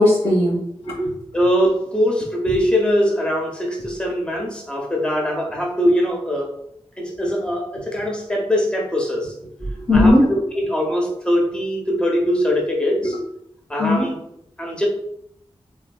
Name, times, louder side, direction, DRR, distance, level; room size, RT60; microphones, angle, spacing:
voice 1, 0.0-1.2 9.7-10.3 13.0-13.2 13.8-14.1, left 1 dB, 85° left, -6 dB, 1.4 m, -17 dB
voice 2, 1.3-6.5 7.0-9.3 9.9-13.1 13.7-14.1 14.6-14.9, equal, 10° left, -1 dB, 0.7 m, -22 dB
3.4 x 2.5 x 2.3 m, 0.75 s
wide cardioid pair, 80°, 10 cm